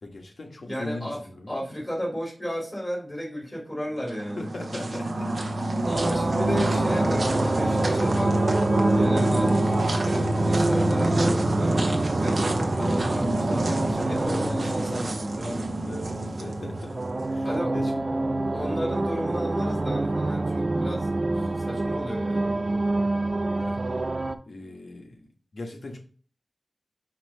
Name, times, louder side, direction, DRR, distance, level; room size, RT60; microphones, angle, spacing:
voice 1, 0.0-1.7 4.3-5.7 15.8-17.0 17.3-18.1 18.5-18.7 23.5-24.0 24.5-26.0, left 2 dB, 80° left, 2 dB, 1.4 m, -40 dB
voice 2, 0.6-1.2 1.5-4.5 5.8-8.3 8.8-15.7 17.4-17.9 18.5-23.0, equal, 30° left, -3 dB, 2.8 m, -33 dB
sound 1, 4.0-17.3, right 1 dB, 75° right, 1.0 m, -27 dB
sound 2, 5.8-24.4, right 2 dB, 55° right, 0.5 m, -27 dB
5.9 x 3.0 x 5.4 m, 0.42 s
cardioid pair, 40°, 0 cm